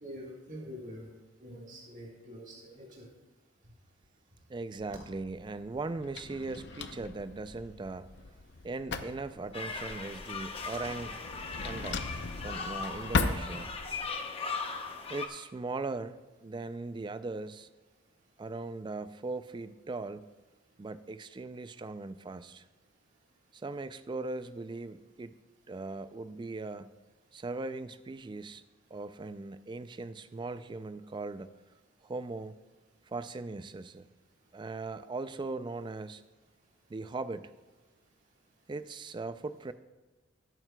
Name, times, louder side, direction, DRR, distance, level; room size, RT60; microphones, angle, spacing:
voice 1, 0.0-1.1 1.4-3.1, equal, 40° right, -4 dB, 1.6 m, -45 dB
voice 2, 4.5-8.1 8.6-11.2 11.6-13.7 15.1-17.7 18.4-20.3 20.8-22.6 23.5-25.3 25.7-26.9 27.3-28.6 28.9-31.5 32.0-32.6 33.1-34.1 34.5-36.2 36.9-37.5 38.7-39.7, right 3 dB, 25° right, 13 dB, 0.3 m, -39 dB
Drawer open or close, 4.7-14.1, left 3 dB, 55° left, 0.6 m, -38 dB
sound 1, 9.5-15.3, left 4 dB, 30° left, 0.8 m, -39 dB
17.0 x 9.1 x 2.2 m, 1.2 s
head